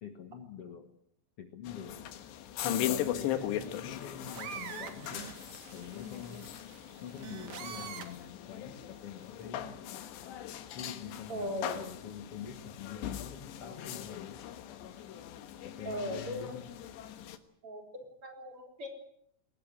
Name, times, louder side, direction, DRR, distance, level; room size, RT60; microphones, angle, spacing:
voice 1, 0.0-0.9 1.4-2.1 2.6-5.3 5.7-6.5 7.0-9.8 10.7-14.4 15.6-16.7, left 7 dB, 60° left, 8 dB, 1.5 m, -45 dB
Ambiente kitchen Cocina Spain España, 1.7-17.4, left 11 dB, 85° left, 3.6 m, -39 dB
sound 1, 4.0-8.3 9.2-9.4, right 7 dB, 55° right, 3.0 m, -45 dB
voice 2, 11.3-11.8 15.8-16.6 17.6-18.9, left 1 dB, 30° right, 3 dB, 4.7 m, -38 dB
22.5 x 19.5 x 9.1 m, 0.71 s
omnidirectional pair, 4.9 m